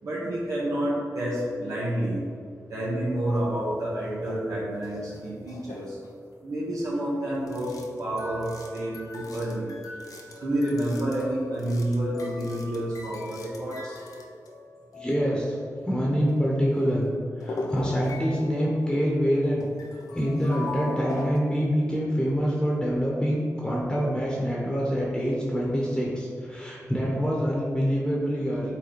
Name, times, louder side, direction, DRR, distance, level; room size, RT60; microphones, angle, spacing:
voice 1, 0.0-2.2 2.7-6.0 6.4-9.7 10.4-14.0, right 1 dB, 70° right, -8 dB, 1.6 m, -29 dB
sound 1, 3.3-3.4 4.0-4.4 4.8-6.2 7.4-15.9 16.3-16.4 16.7-16.9 17.4-21.4, left 2 dB, 85° left, 0.7 m, -40 dB
voice 2, 14.9-15.6 15.8-17.1 17.4-19.7 20.1-28.7, equal, 10° left, -4 dB, 1.3 m, -26 dB
8.1 x 3.9 x 4.3 m, 2.2 s
wide cardioid pair, 80°, 6 cm